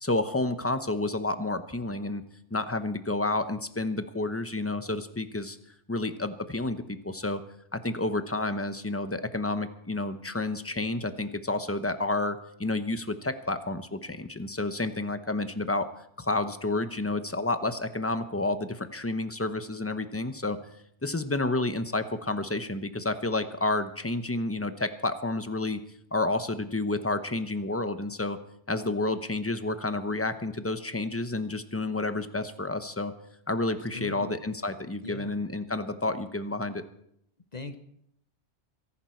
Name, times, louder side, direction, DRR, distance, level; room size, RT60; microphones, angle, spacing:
voice 1, 0.0-2.2 2.5-5.6 5.9-7.4 7.7-15.9 16.2-20.6 21.0-25.8 26.1-28.4 28.7-33.1 33.5-36.8, left 2 dB, 15° left, 10 dB, 0.8 m, -30 dB
voice 2, 33.7-34.4 35.0-35.3 37.5-37.8, left 3 dB, 40° left, 9 dB, 1.1 m, -40 dB
24.0 x 11.0 x 4.5 m, 0.73 s
omnidirectional pair, 1.2 m